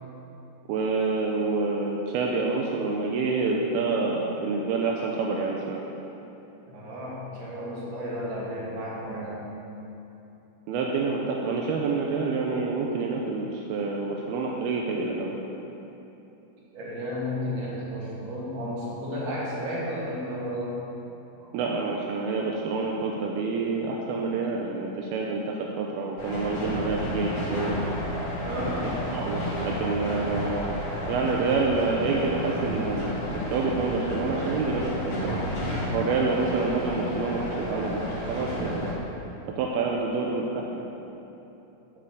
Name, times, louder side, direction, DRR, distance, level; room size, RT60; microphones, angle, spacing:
voice 1, 0.7-5.8 10.7-15.4 21.5-27.8 28.7-28.8 29.1-30.8 31.1-35.4 35.9-39.0 39.6-40.8, right 4 dB, 85° right, -1 dB, 2.7 m, -27 dB
voice 2, 6.7-9.5 16.7-20.8 21.4-21.5 28.4-28.9, equal, 55° right, -6 dB, 4.0 m, -33 dB
sound 1, 26.2-38.9, equal, 45° left, 3.4 m, -31 dB
14.5 x 6.0 x 6.8 m, 3.0 s
omnidirectional pair, 4.5 m